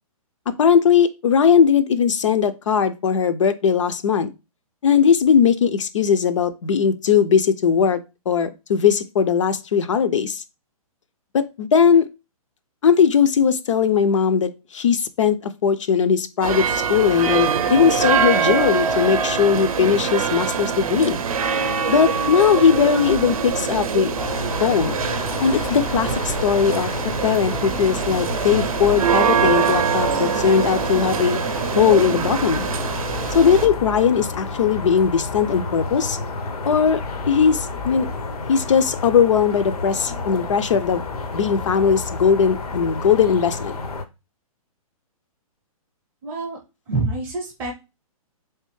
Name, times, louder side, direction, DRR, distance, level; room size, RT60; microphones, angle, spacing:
voice 1, 0.5-4.3 4.8-8.0 8.3-10.4 11.3-12.1 12.8-21.2 21.9-24.1 24.6-24.9 25.4-26.9 27.2-31.4 31.7-32.7 33.3-36.2 36.6-38.1 38.5-41.0 41.3-43.8, left 7 dB, 55° left, 11 dB, 0.4 m, -19 dB
sound 1, 16.4-33.7, right 6 dB, 70° right, 0.6 m, -23 dB
sound 2, 24.2-44.0, left 3 dB, 85° left, 0.8 m, -31 dB
voice 2, 46.2-46.6 46.9-47.7, right 3 dB, 10° right, -2 dB, 0.5 m, -26 dB
3.4 x 3.3 x 3.1 m, 0.27 s
hypercardioid pair, 175°, 19 cm